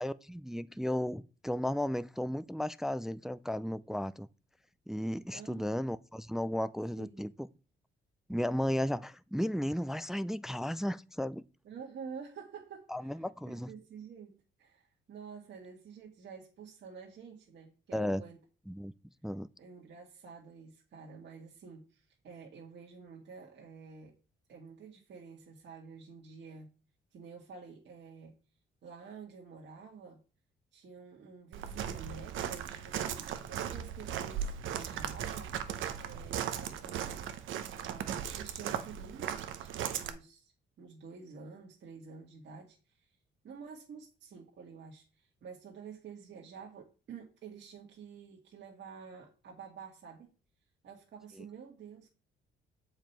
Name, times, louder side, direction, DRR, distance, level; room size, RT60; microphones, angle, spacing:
voice 1, 0.0-4.3 4.9-7.5 8.3-11.4 12.9-13.7 17.9-18.2 18.7-18.9 19.2-19.5, equal, ahead, 0.3 m, -34 dB
voice 2, 5.3-5.8 7.0-7.3 11.6-14.3 14.6-18.4 19.6-24.1 24.5-26.7 27.1-28.3 28.8-30.2 30.7-35.6 36.0-37.3 37.7-40.5 40.8-43.1 43.4-50.3 50.8-52.1, right 6 dB, 60° right, 1.9 m, -49 dB
Walk footsteps, 31.5-40.1, right 9 dB, 80° right, 0.9 m, -37 dB
7.4 x 5.0 x 4.5 m
cardioid pair, 90°, 20 cm